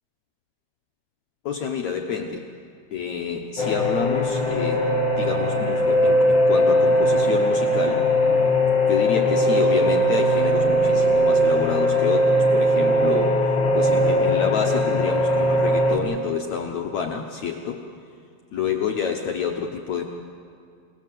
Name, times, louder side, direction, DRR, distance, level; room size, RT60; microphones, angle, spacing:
voice 1, 1.5-2.5 2.9-4.8 5.2-8.1 8.9-13.4 13.7-17.8 18.5-20.0, left 7 dB, 65° left, 2 dB, 1.9 m, -28 dB
sound 1, 3.6-16.0, equal, 30° left, 3.1 m, -20 dB
28.5 x 19.0 x 7.6 m, 2.3 s
omnidirectional pair, 4.4 m